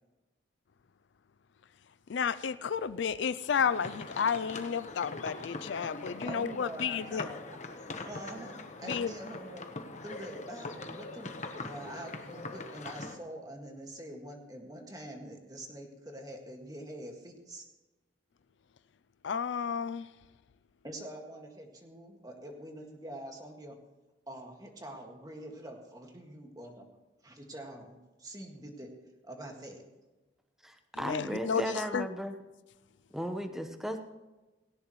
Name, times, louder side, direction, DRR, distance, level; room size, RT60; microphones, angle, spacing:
voice 1, 2.1-7.3 8.8-9.1 19.2-20.1 30.9-32.1, left 7 dB, 70° left, 15 dB, 0.4 m, -32 dB
sound 1, 3.6-13.2, left 3 dB, 40° left, 1.1 m, -42 dB
voice 2, 6.3-7.4 8.0-9.6 10.0-17.7 20.8-23.8 24.3-26.9 27.2-28.9 29.2-29.8, right 1 dB, 20° right, 2 dB, 1.9 m, -45 dB
voice 3, 30.6-32.3 33.1-34.0, equal, ahead, 6 dB, 1.0 m, -35 dB
17.5 x 17.5 x 3.1 m, 1.1 s
head